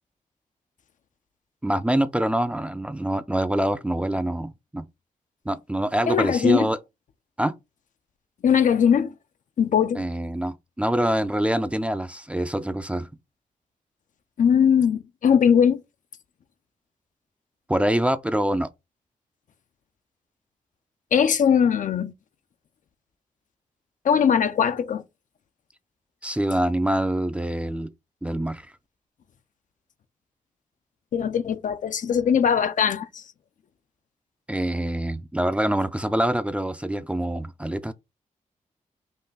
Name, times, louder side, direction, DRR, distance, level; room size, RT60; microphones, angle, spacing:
voice 1, 1.6-4.8 5.5-6.8 7.4-7.6 10.0-13.1 17.7-18.7 26.2-27.9 28.2-28.7 34.5-37.9, right 1 dB, 10° right, 0.4 m, -25 dB
voice 2, 6.1-6.7 8.4-9.1 9.6-10.1 14.4-15.8 21.1-22.1 24.0-25.0 31.1-33.2, left 7 dB, 65° left, 0.5 m, -20 dB
5.4 x 2.2 x 3.9 m
cardioid pair, 75°, 14 cm